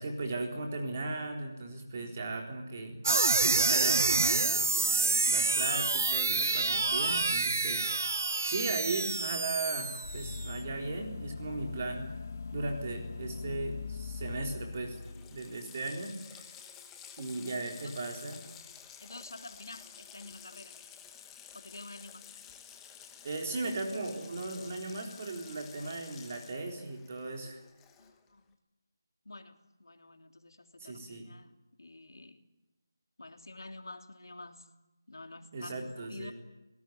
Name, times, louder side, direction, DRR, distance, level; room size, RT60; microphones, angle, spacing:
voice 1, 0.0-3.0 3.4-12.1 12.5-15.0 15.3-16.5 17.2-18.4 23.2-27.6 30.8-31.3 35.5-36.3, right 3 dB, 25° right, 2 dB, 4.0 m, -37 dB
sound 1, 3.0-10.5, right 3 dB, 50° right, 0.9 m, -28 dB
sound 2, 9.7-15.6, left 4 dB, 40° left, 1.6 m, -41 dB
Water tap faucet, 14.2-14.3 14.5-28.3, left 8 dB, 5° left, 1.1 m, -52 dB
voice 2, 17.4-18.1 19.0-20.8 21.5-22.3 28.0-28.6 29.2-31.5 31.8-32.4 33.2-34.7 35.1-36.3, left 2 dB, 75° left, 5 dB, 3.3 m, -49 dB
27.0 x 18.5 x 9.4 m, 1.0 s
figure-of-eight pair, 175°, 2 cm